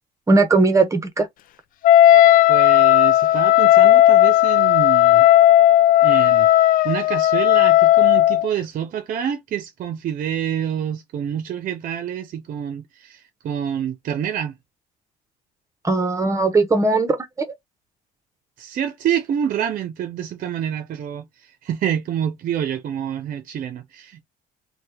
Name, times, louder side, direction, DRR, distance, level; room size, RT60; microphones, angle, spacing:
voice 1, 0.3-1.3 15.8-17.2, right 3 dB, 20° right, 0.9 m, -18 dB
Wind instrument woodwind instrument, 1.8-8.5, left 13 dB, 55° left, 0.4 m, -14 dB
voice 2, 2.5-5.3 6.0-6.5 6.8-14.6 18.6-24.2, right 9 dB, 55° right, 0.6 m, -27 dB
2.7 x 2.2 x 3.4 m
cardioid pair, 110°, 17 cm